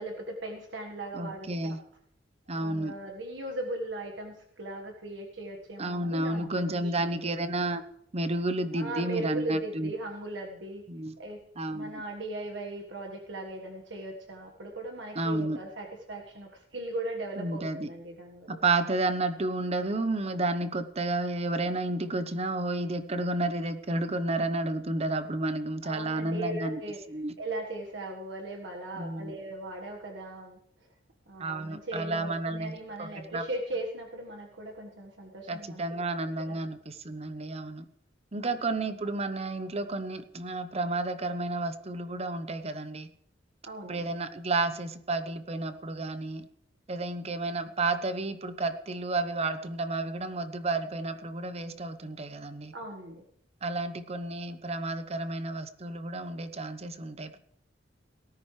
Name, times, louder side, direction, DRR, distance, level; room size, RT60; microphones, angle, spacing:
voice 1, 0.0-1.8 2.5-7.3 8.7-10.8 11.2-11.4 11.7-18.6 25.8-27.0 27.4-30.9 31.3-35.8 36.1-36.6 38.3-38.8 43.6-44.1 52.7-53.2, right 2 dB, 75° right, 2 dB, 1.5 m, -38 dB
voice 2, 1.1-1.8 2.5-2.9 5.8-7.8 8.1-9.9 10.9-11.2 11.6-12.0 15.1-15.6 17.4-17.9 18.5-26.8 27.1-27.3 28.9-29.3 31.4-33.4 35.5-37.9 38.3-43.1 43.8-46.5 46.9-52.7 53.6-57.4, right 2 dB, 35° right, 11 dB, 0.9 m, -31 dB
18.5 x 13.5 x 3.3 m, 0.70 s
head